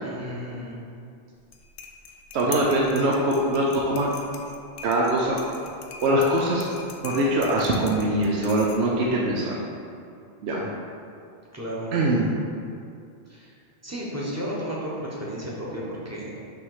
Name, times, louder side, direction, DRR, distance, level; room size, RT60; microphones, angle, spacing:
voice 1, 0.0-0.8 11.5-11.9 13.3-13.5 13.8-16.3, equal, 15° right, -6 dB, 1.0 m, -33 dB
sound 1, 1.4-9.1, left 6 dB, 65° left, 0.7 m, -43 dB
voice 2, 2.3-4.1 4.8-5.4 6.0-6.7 7.0-9.6 10.4-10.7 11.9-12.3, right 1 dB, 75° right, -3 dB, 0.9 m, -22 dB
5.7 x 3.2 x 5.5 m, 2.4 s
omnidirectional pair, 1.1 m